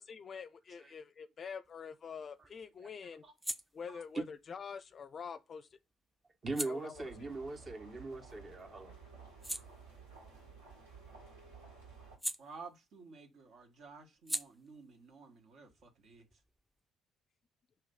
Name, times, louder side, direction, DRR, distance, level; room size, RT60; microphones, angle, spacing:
voice 1, 0.0-3.2 3.7-5.7 6.6-6.9, left 6 dB, 40° left, 0.5 m, -46 dB
sound 1, 1.6-8.5 8.9-13.2 13.4-16.8, equal, 5° right, 0.6 m, -47 dB
voice 2, 3.9-4.2 6.4-8.9, right 3 dB, 35° right, 1.3 m, -41 dB
sound 2, 6.9-12.2, right 4 dB, 80° right, 2.2 m, -54 dB
voice 3, 12.4-16.4, right 4 dB, 55° right, 1.4 m, -53 dB
5.8 x 3.2 x 5.3 m
figure-of-eight pair, 50°, 0 cm